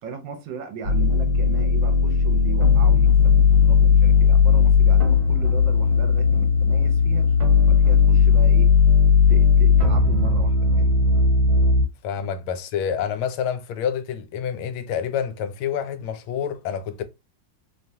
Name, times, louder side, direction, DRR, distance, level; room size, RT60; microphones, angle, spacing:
voice 1, 0.0-7.3 7.7-8.7 9.3-10.9, right 5 dB, 70° right, 1.3 m, -37 dB
sound 1, 0.8-11.8, left 6 dB, 45° right, 1.3 m, -17 dB
voice 2, 12.0-17.0, left 8 dB, 90° left, 1.4 m, -28 dB
3.3 x 2.3 x 2.6 m
omnidirectional pair, 2.2 m